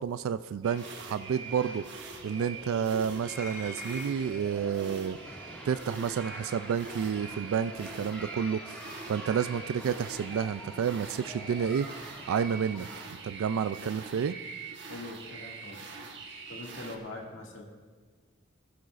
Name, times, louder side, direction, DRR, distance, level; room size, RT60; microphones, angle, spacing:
voice 1, 0.0-5.2 5.6-8.8 9.1-11.9 12.3-12.9 13.2-14.4, right 7 dB, 90° right, 13 dB, 0.3 m, -30 dB
sound 1, 0.6-17.0, right 4 dB, 55° right, 1.3 m, -44 dB
sound 2, 0.7-13.1, equal, 10° left, 1.8 m, -46 dB
sound 3, 3.2-4.5 5.8-5.9 6.9-7.0, equal, 10° right, 1.5 m, -43 dB
voice 2, 14.9-16.0 16.5-17.6, left 2 dB, 65° left, -1 dB, 2.1 m, -43 dB
21.5 x 12.0 x 2.5 m, 1.5 s
head